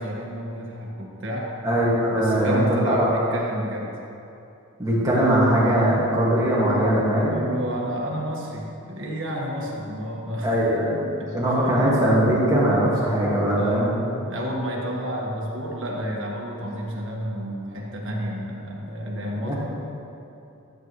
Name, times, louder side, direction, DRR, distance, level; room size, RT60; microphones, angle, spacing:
voice 1, 0.0-1.5 2.1-3.9 7.2-10.8 11.2-11.7 13.5-13.8 14.3-19.6, equal, 60° right, -2 dB, 1.6 m, -30 dB
voice 2, 1.6-3.1 4.8-7.4 10.4-11.1 11.3-14.0 19.4-19.6, right 1 dB, 15° right, -7 dB, 2.0 m, -20 dB
13.5 x 8.2 x 3.2 m, 2.8 s
head